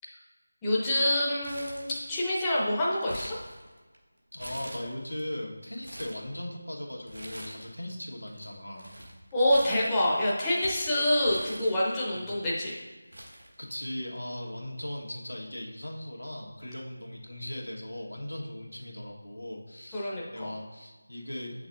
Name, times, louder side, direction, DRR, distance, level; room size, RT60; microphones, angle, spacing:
voice 1, 0.6-3.4 9.3-12.8 19.9-20.5, left 1 dB, 10° left, -7 dB, 0.9 m, -27 dB
Crumpling crinkling, 1.4-2.4 2.7-4.0 4.4-5.2 5.6-6.2 7.1-7.9 8.1-12.2 12.8-12.9 13.1-14.2 14.5-14.6 15.5-15.8, equal, 70° right, 1.5 m, -45 dB
voice 2, 4.3-8.9 12.1-12.3 13.6-21.7, left 1 dB, 80° left, -1 dB, 1.7 m, -38 dB
7.5 x 6.0 x 2.6 m, 1.3 s
figure-of-eight pair, 165°, 0 cm